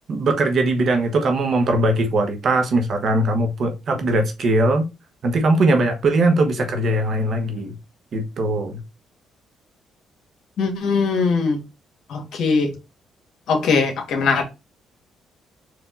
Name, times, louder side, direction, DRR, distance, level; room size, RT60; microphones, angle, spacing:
voice 1, 0.1-4.9 5.2-7.7 8.1-8.8, right 2 dB, 55° right, 1.2 m, -20 dB
voice 2, 10.6-11.6 12.1-12.7 13.5-14.4, left 4 dB, 70° left, 1.6 m, -20 dB
4.7 x 2.8 x 3.9 m
cardioid pair, 90°, 0 cm